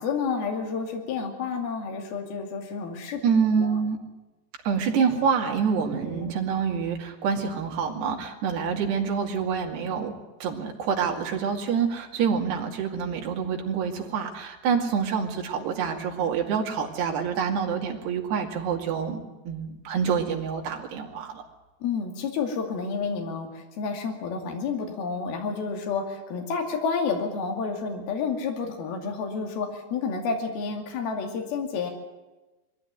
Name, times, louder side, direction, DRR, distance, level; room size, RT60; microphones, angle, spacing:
voice 1, 0.0-3.2 3.6-3.7 5.9-6.3 21.8-31.9, left 5 dB, 65° left, 2 dB, 4.3 m, -30 dB
voice 2, 3.2-4.0 4.6-10.1 10.4-19.2 19.5-21.4, right 6 dB, 75° right, 1 dB, 4.5 m, -26 dB
22.0 x 15.0 x 9.5 m, 1.1 s
omnidirectional pair, 4.9 m